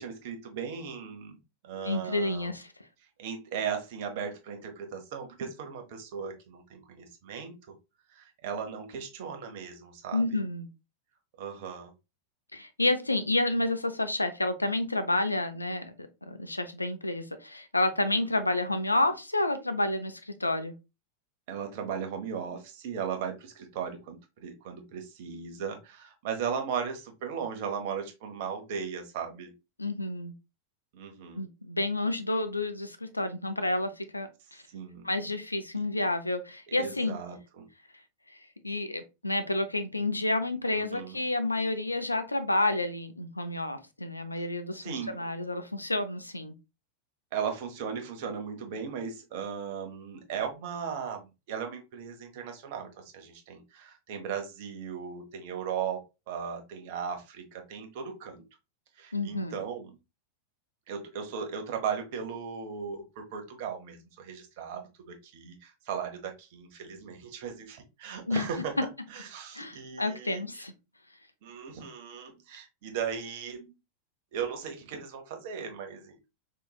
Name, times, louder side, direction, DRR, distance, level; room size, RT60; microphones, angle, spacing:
voice 1, 0.0-1.4 1.6-2.5 3.2-7.7 8.1-10.4 11.4-11.9 21.5-29.5 30.9-31.4 34.7-35.1 35.7-35.8 36.7-37.7 40.7-41.2 44.8-45.2 47.3-51.2 51.5-56.0 56.3-58.4 59.0-59.9 60.9-68.8 69.1-70.7 71.4-73.7 74.3-76.2, right 7 dB, 50° right, 4 dB, 0.9 m, -37 dB
voice 2, 1.8-2.7 10.1-10.7 12.5-20.8 29.8-30.3 31.4-34.6 35.0-37.2 38.6-46.5 59.1-59.6 68.3-68.5 69.5-70.7, left 2 dB, 85° left, 10 dB, 0.4 m, -30 dB
3.9 x 2.8 x 2.3 m, 0.26 s
figure-of-eight pair, 90°, 0 cm